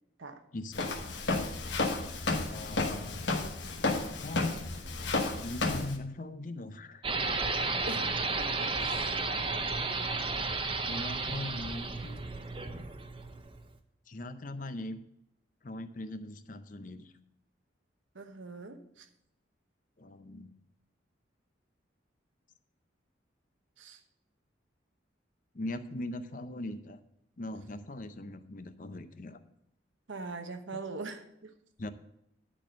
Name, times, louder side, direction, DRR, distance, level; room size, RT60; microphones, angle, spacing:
voice 1, 0.5-0.9 2.4-3.3 4.2-4.6 5.3-7.1 10.9-12.2 14.1-15.0 15.6-17.1 20.0-20.5 25.5-27.0 27.4-29.4 31.8-31.9, left 1 dB, 45° left, 10 dB, 0.6 m, -40 dB
Walk footsteps, 0.7-5.9, left 2 dB, 70° left, 1.2 m, -32 dB
sound 1, 7.0-13.7, right 3 dB, 25° right, 0.7 m, -33 dB
voice 2, 8.4-9.2 18.1-19.1 23.8-24.0 30.1-31.5, right 3 dB, 85° right, 7 dB, 1.0 m, -42 dB
11.0 x 4.4 x 7.3 m, 0.80 s
head